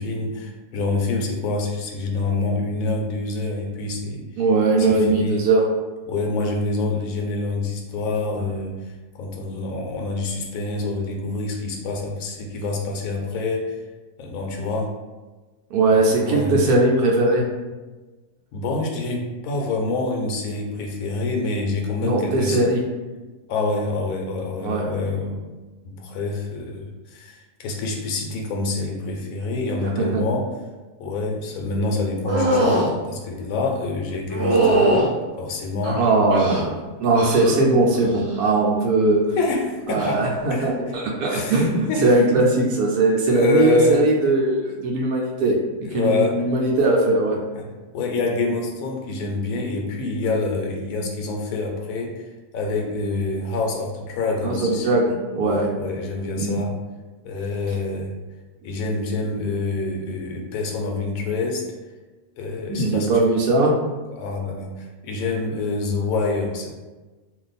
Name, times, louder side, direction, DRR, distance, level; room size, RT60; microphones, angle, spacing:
voice 1, 0.0-4.2 4.8-5.4 6.1-13.8 14.2-14.9 15.9-16.7 18.5-22.6 23.5-25.4 25.8-30.5 31.0-35.1 35.4-36.0 39.4-40.2 40.5-40.7 41.2-42.4 43.3-44.0 45.8-46.4 47.5-47.7 47.9-52.3 52.5-54.9 55.4-56.7 57.2-58.1 58.6-61.7 62.4-63.1 64.1-66.7, left 3 dB, 70° left, 1 dB, 1.0 m, -26 dB
voice 2, 4.4-5.7 15.7-17.4 22.0-22.8 24.6-24.8 29.8-30.2 35.9-36.7 37.0-39.2 39.9-45.6 45.9-47.4 54.4-55.7 56.4-56.6 62.7-63.7, right 2 dB, 90° right, -1 dB, 1.1 m, -20 dB
sound 1, 32.3-32.9 34.3-35.1 35.8-36.7 37.1-37.6 37.9-38.4 39.9-40.1, right 1 dB, 50° right, 1.1 m, -21 dB
2.6 x 2.4 x 3.9 m, 1.2 s
omnidirectional pair, 1.6 m